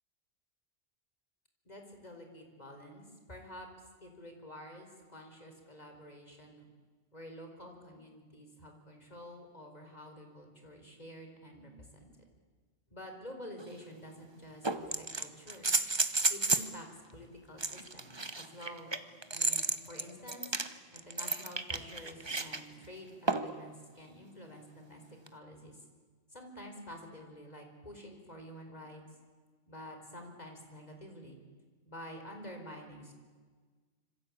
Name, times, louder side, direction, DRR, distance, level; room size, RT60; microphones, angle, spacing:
voice 1, 1.6-3.7 4.0-6.6 7.1-12.1 12.9-15.7 16.3-18.9 19.3-20.5 20.9-25.8 26.3-29.0 29.7-31.4 31.8-33.1, equal, 35° left, 4 dB, 4.7 m, -49 dB
sound 1, 13.6-13.7 14.6-16.7 17.6-22.6 23.3-23.6 25.3-25.4, right 3 dB, 20° right, 1.1 m, -32 dB
26.5 x 26.0 x 8.8 m, 1.5 s
omnidirectional pair, 1.3 m